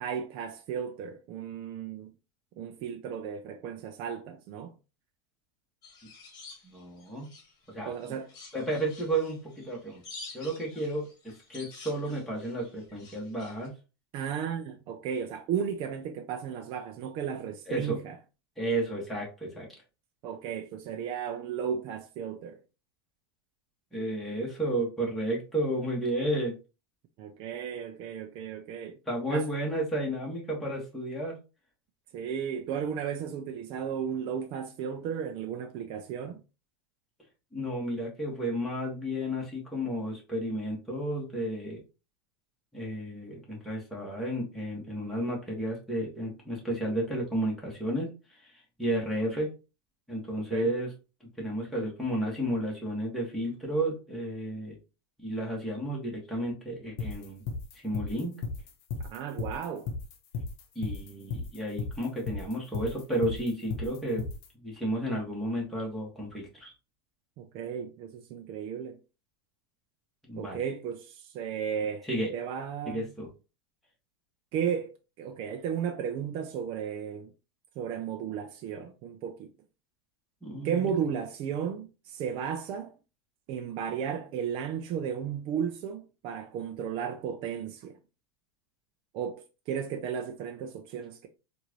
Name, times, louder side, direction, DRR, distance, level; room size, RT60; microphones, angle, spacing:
voice 1, 0.0-2.1 2.6-4.7 7.8-8.3 14.1-18.2 20.2-22.6 27.2-29.0 29.3-29.5 32.1-36.4 50.5-50.8 59.0-59.9 67.4-69.0 70.4-73.1 74.5-77.3 77.8-79.5 80.6-82.9 83.5-88.0 89.1-91.3, right 7 dB, 40° right, 0.5 m, -34 dB
sound 1, 5.8-7.6 8.0-13.7, left 3 dB, 30° left, 1.5 m, -49 dB
voice 2, 6.6-7.3 7.7-7.9 8.5-10.0 10.3-13.7 17.7-18.0 18.6-19.7 23.9-26.5 29.1-31.4 37.5-41.8 42.7-48.1 48.4-48.5 48.8-49.5 50.1-50.9 51.4-54.8 55.2-57.4 57.8-58.3 60.8-64.2 64.6-66.7 70.2-70.6 72.0-72.3 72.9-73.3 80.4-81.0, right 1 dB, ahead, 1.6 m, -32 dB
sound 2, 57.0-64.5, left 4 dB, 50° left, 0.9 m, -35 dB
4.3 x 2.6 x 3.0 m
supercardioid pair, 135°, 13 cm